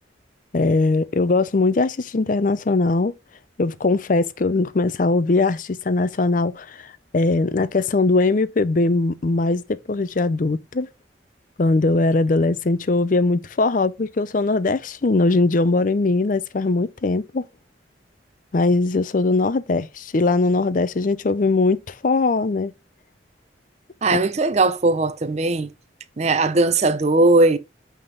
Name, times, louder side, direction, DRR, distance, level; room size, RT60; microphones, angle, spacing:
voice 1, 0.5-3.1 3.6-6.9 7.1-10.9 11.6-17.4 18.5-22.7, left 3 dB, 45° left, 0.5 m, -20 dB
voice 2, 24.0-25.7 26.2-27.6, right 2 dB, 35° right, 0.5 m, -18 dB
8.8 x 3.6 x 3.8 m
head